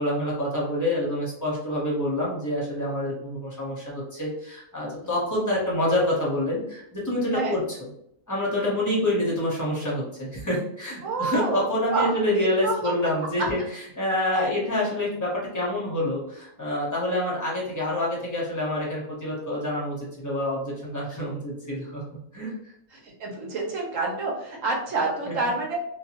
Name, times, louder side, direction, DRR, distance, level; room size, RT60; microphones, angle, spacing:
voice 1, 0.0-7.6 8.3-22.0 22.3-22.5 25.3-25.4, left 1 dB, 20° left, -5 dB, 0.5 m, -27 dB
voice 2, 11.0-11.7 11.9-12.7 14.3-14.5 22.9-25.8, right 3 dB, 65° right, -1 dB, 1.1 m, -28 dB
2.6 x 2.3 x 2.8 m, 0.73 s
omnidirectional pair, 1.6 m